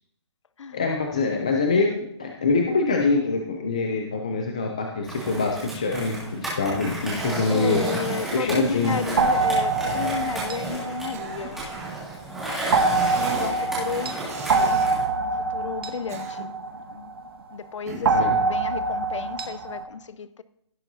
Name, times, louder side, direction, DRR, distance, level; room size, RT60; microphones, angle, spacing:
voice 1, 0.7-1.9 2.2-7.8 8.3-9.0 18.1-18.4, left 3 dB, 15° left, 0.3 m, -24 dB
Skateboard, 5.0-15.0, right 2 dB, ahead, 2.0 m, -33 dB
voice 2, 7.5-12.0 12.4-12.9 13.3-14.1 15.2-16.5 16.9-17.1 17.5-20.4, left 6 dB, 90° left, 0.6 m, -33 dB
Cough, 7.8-8.3 8.8-9.5 9.9-10.1 10.8-12.0 13.0-13.6 14.2-14.9 15.8-16.7 17.9-18.3, right 4 dB, 30° right, 1.7 m, -38 dB
sound 1, 9.2-11.9 12.7-17.3 18.0-19.8, right 3 dB, 50° right, 1.1 m, -25 dB
16.5 x 7.4 x 2.7 m
hypercardioid pair, 175°, 15 cm